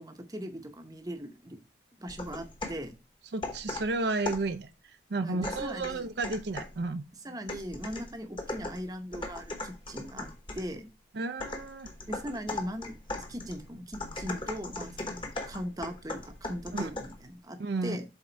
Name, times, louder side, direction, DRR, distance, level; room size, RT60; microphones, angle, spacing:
voice 1, 0.0-1.6 2.0-3.0 5.2-6.1 7.2-10.9 12.1-18.0, equal, 20° right, 0.8 m, -39 dB
sound 1, 2.1-2.9 3.4-4.6 5.4-6.8 7.5-10.7 11.4-17.2, left 2 dB, 25° left, 1.0 m, -39 dB
voice 2, 3.3-7.0 11.1-11.9 16.7-16.9 17.6-18.0, right 3 dB, 60° right, 0.5 m, -32 dB
7.9 x 3.7 x 4.4 m
head